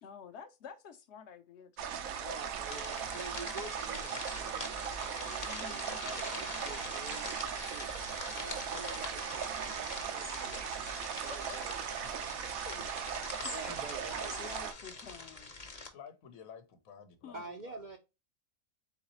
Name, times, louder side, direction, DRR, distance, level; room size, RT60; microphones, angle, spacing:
voice 1, 0.0-1.9 5.4-6.0 11.1-11.2 11.5-11.6 13.4-13.5 14.4-15.5 17.2-17.6, left 6 dB, 60° left, 0.9 m, -50 dB
sound 1, 1.8-14.7, right 8 dB, 85° right, 1.1 m, -38 dB
voice 2, 2.2-7.9 8.4-12.1 13.3-14.4 17.3-18.0, right 3 dB, 55° right, 0.5 m, -47 dB
sound 2, 2.7-15.9, left 3 dB, 35° left, 0.8 m, -44 dB
voice 3, 15.9-17.4 17.6-17.9, left 6 dB, 90° left, 1.2 m, -51 dB
4.0 x 3.9 x 2.8 m
omnidirectional pair, 1.4 m